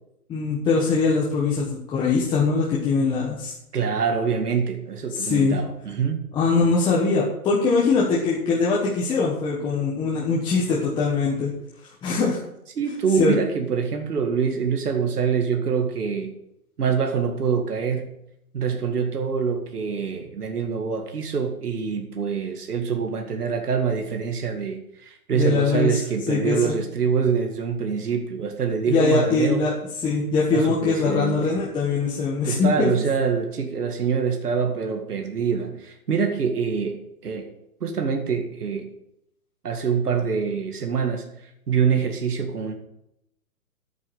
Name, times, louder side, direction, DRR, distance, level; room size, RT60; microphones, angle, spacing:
voice 1, 0.3-3.5 5.1-5.6 6.3-11.5 12.0-12.4 13.2-13.3 25.3-26.0 26.3-26.8 28.9-29.7 30.0-32.9, left 4 dB, 10° left, -5 dB, 1.3 m, -22 dB
voice 2, 3.7-6.2 12.8-16.3 16.8-18.1 18.5-29.6 30.5-31.4 32.4-37.5 37.8-38.9 39.6-42.7, right 6 dB, 85° right, 3 dB, 2.2 m, -25 dB
10.0 x 8.9 x 6.3 m, 0.80 s
hypercardioid pair, 155°, 45 cm